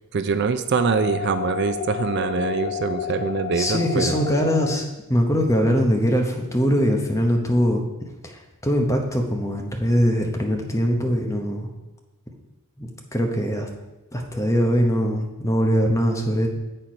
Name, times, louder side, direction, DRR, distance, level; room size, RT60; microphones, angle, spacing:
voice 1, 0.1-4.2, right 5 dB, 50° right, 10 dB, 0.4 m, -24 dB
sound 1, 0.8-4.8, left 8 dB, 45° left, 0.3 m, -30 dB
voice 2, 3.6-7.8 8.2-8.3 8.6-11.7 12.8-13.7 14.1-16.5, equal, 15° left, 2 dB, 0.8 m, -22 dB
7.9 x 4.4 x 5.0 m, 1.0 s
head